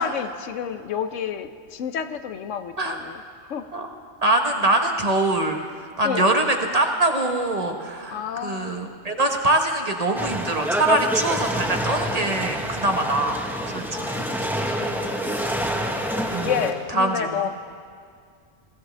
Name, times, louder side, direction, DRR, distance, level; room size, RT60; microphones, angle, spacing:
voice 1, 0.0-3.2 3.5-3.7 6.0-6.3 8.1-8.9 13.9-15.7 16.4-17.5, left 8 dB, 85° left, 9 dB, 1.1 m, -30 dB
voice 2, 4.2-5.6 6.0-13.4 13.7-14.2 16.3-16.5 16.9-17.5, right 2 dB, 35° right, 3 dB, 1.1 m, -23 dB
sound 1, 10.2-16.7, equal, ahead, 1.0 m, -27 dB
21.0 x 16.0 x 3.4 m, 2.2 s
omnidirectional pair, 1.2 m